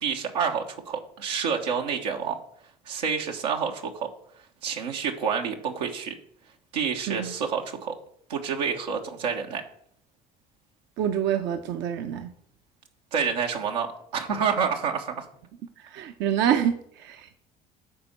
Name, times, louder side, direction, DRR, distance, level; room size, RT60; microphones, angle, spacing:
voice 1, 0.0-2.4 2.9-4.1 4.6-6.1 6.7-7.9 8.3-9.6 13.1-13.9 14.1-15.2, right 6 dB, 85° right, 1 dB, 1.2 m, -28 dB
voice 2, 11.0-12.3 15.8-17.4, right 9 dB, 60° right, 6 dB, 0.8 m, -27 dB
10.5 x 4.4 x 6.6 m, 0.66 s
hypercardioid pair, 60°, 21 cm